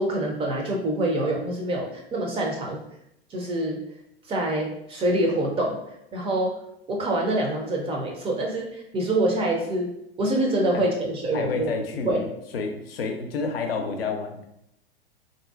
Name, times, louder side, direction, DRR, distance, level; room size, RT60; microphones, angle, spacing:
voice 1, 0.0-2.8 3.3-3.8 4.3-5.8 6.1-6.5 6.9-9.9 10.2-11.7 12.0-12.2, right 1 dB, 20° right, 0 dB, 0.5 m, -25 dB
voice 2, 11.3-12.3 12.5-14.4, left 4 dB, 65° left, 4 dB, 0.6 m, -29 dB
3.6 x 2.7 x 2.3 m, 0.78 s
figure-of-eight pair, 95°, 31 cm